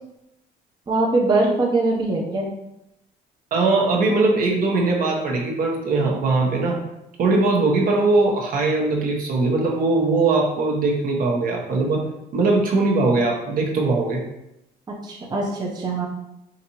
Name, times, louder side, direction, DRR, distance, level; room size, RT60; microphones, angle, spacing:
voice 1, 0.9-2.5 15.0-16.1, right 2 dB, 25° right, -2 dB, 0.7 m, -22 dB
voice 2, 3.5-6.8 7.2-12.0 12.3-14.2, right 3 dB, 55° right, 0 dB, 1.0 m, -20 dB
5.0 x 2.7 x 2.9 m, 0.86 s
cardioid pair, 110°, 17 cm